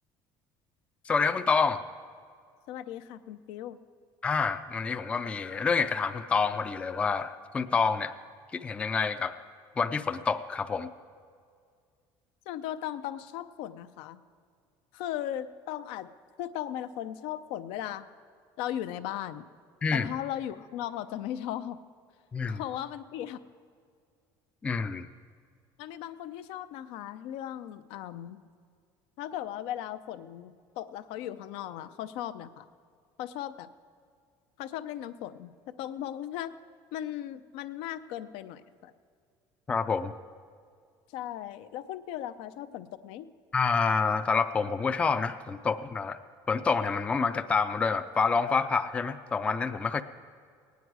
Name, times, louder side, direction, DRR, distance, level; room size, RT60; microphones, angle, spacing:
voice 1, 1.1-1.8 4.2-8.1 8.5-9.4 9.8-10.9 19.8-20.1 22.3-22.6 24.6-25.1 39.7-40.1 43.5-46.2 46.5-50.0, left 5 dB, 15° left, 9 dB, 0.3 m, -27 dB
voice 2, 2.7-3.8 12.5-14.2 14.9-16.1 16.4-18.0 18.6-19.4 19.9-21.8 22.5-23.4 25.8-28.4 29.2-32.7 33.2-33.7 34.6-36.5 36.9-38.9 41.1-43.3, left 11 dB, 80° left, 12 dB, 0.6 m, -37 dB
18.0 x 9.4 x 4.7 m, 2.1 s
cardioid pair, 165°, 9 cm